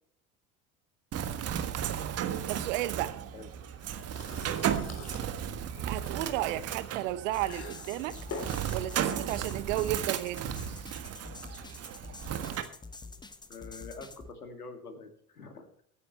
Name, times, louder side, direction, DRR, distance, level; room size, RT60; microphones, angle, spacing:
Bird, 1.1-12.6, right 9 dB, 35° right, 1.5 m, -35 dB
voice 1, 2.5-3.2 5.8-8.2 8.7-10.6, right 15 dB, 55° right, 1.0 m, -33 dB
sound 1, 2.8-13.7, left 4 dB, 35° left, 3.3 m, -49 dB
sound 2, 7.3-14.3, left 3 dB, 10° left, 1.0 m, -47 dB
voice 2, 13.5-15.8, left 4 dB, 80° left, 2.3 m, -46 dB
22.5 x 9.7 x 3.1 m
figure-of-eight pair, 70°, 44 cm